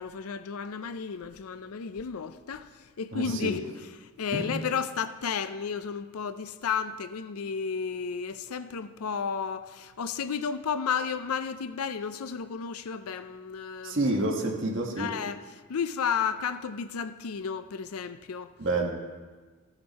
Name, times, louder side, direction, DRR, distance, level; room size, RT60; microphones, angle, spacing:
voice 1, 0.0-14.1 15.0-18.5, left 6 dB, 85° left, 0.5 m, -33 dB
voice 2, 3.1-3.5 4.3-4.5 13.8-15.1 18.6-18.9, right 2 dB, 60° right, 1.3 m, -28 dB
15.0 x 8.0 x 4.1 m
head